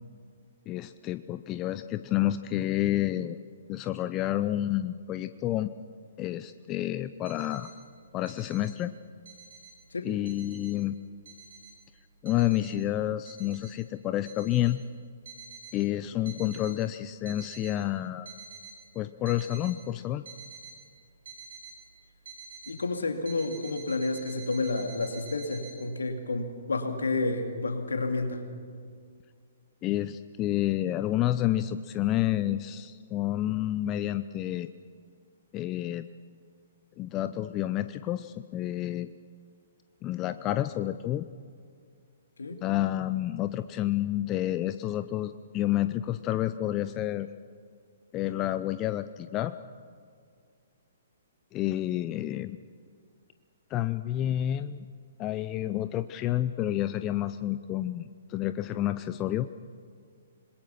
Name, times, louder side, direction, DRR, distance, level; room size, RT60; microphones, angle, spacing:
voice 1, 0.7-3.4 3.7-5.7 6.2-7.7 8.1-8.9 10.0-11.0 12.2-14.8 15.7-18.3 19.0-20.3 29.8-34.7 35.5-36.1 37.0-39.1 40.0-41.3 42.6-47.3 48.1-49.5 51.5-52.6 53.7-54.9 55.2-59.5, left 13 dB, 25° left, 12 dB, 0.5 m, -29 dB
sound 1, 7.0-7.7 8.2-8.7 9.1-9.7 10.2-10.7 11.2-11.8 12.2-12.7 13.2-13.7 14.2-14.7 15.2-15.7 16.2-16.7 17.1-17.7 18.2-18.7 19.2-19.7 20.2-20.7 21.2-21.7 22.2-22.7 23.2-25.8, right 5 dB, 60° right, 6.4 m, -47 dB
voice 2, 22.7-28.4 42.4-42.6, left 3 dB, 75° left, 5 dB, 2.6 m, -30 dB
26.5 x 21.5 x 5.9 m, 2.2 s
figure-of-eight pair, 120°, 0 cm